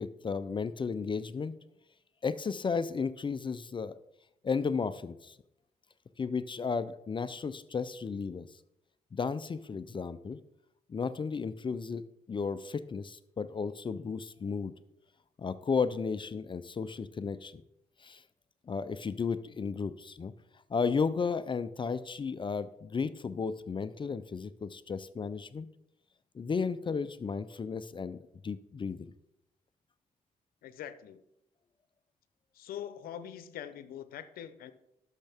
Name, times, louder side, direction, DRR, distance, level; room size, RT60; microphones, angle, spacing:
voice 1, 0.0-1.5 2.2-3.9 4.4-5.4 6.2-8.5 9.1-10.4 10.9-12.0 12.3-14.7 15.4-17.6 18.0-18.2 18.7-20.3 20.7-25.7 26.3-29.0, left 5 dB, 35° left, 13 dB, 0.5 m, -34 dB
voice 2, 30.6-31.2 32.5-34.7, left 10 dB, 85° left, 13 dB, 0.7 m, -43 dB
11.5 x 6.5 x 3.5 m, 0.83 s
cardioid pair, 80°, 15 cm